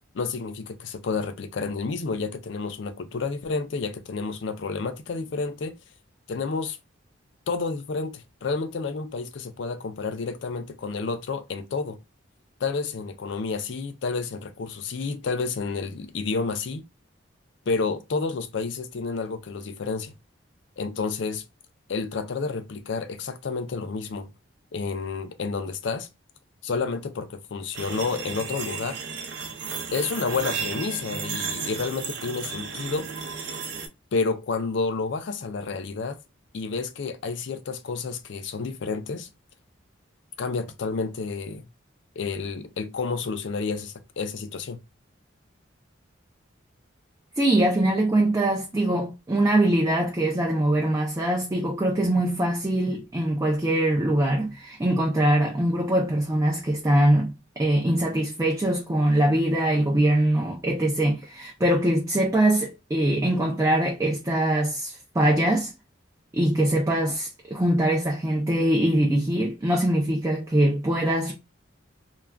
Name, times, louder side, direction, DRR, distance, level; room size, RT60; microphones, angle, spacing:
voice 1, 0.1-5.7 6.3-6.8 7.5-12.0 12.6-16.8 17.7-20.1 20.8-21.4 21.9-24.3 24.7-26.1 26.6-29.0 29.9-33.1 34.1-36.2 36.5-39.3 40.4-41.6 42.2-44.8, left 4 dB, 60° left, 0.4 m, -30 dB
sound 1, 27.7-33.9, right 5 dB, 65° right, 0.6 m, -33 dB
voice 2, 47.4-65.7 66.3-71.3, right 1 dB, 15° right, 0.4 m, -23 dB
2.3 x 2.3 x 3.3 m
head